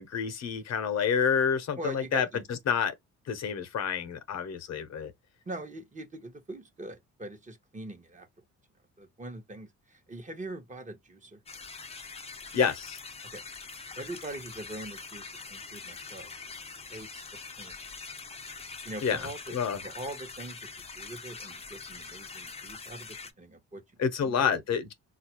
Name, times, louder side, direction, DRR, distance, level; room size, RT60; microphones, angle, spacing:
voice 1, 0.0-2.9 3.3-5.1 12.5-13.0 19.0-19.8 24.0-24.9, left 7 dB, 60° left, 0.8 m, -29 dB
voice 2, 1.8-2.4 5.5-8.3 9.0-11.4 13.3-13.4 14.0-16.3 16.9-17.1 17.6-17.8 18.8-19.5 19.8-23.8 24.2-24.6, right 2 dB, 25° right, 0.9 m, -42 dB
sound 1, 11.5-23.3, left 4 dB, 20° left, 0.6 m, -44 dB
4.0 x 2.4 x 2.8 m
cardioid pair, 90°, 30 cm